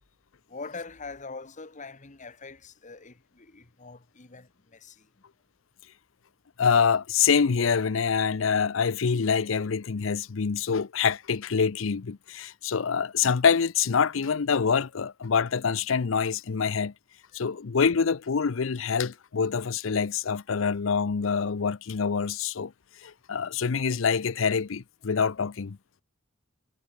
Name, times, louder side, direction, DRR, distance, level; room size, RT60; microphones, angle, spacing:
voice 1, 0.5-5.1 17.3-17.4, left 4 dB, 40° left, 1.5 m, -43 dB
voice 2, 6.6-16.9 17.3-22.7 23.0-25.8, left 6 dB, 70° left, 0.6 m, -25 dB
head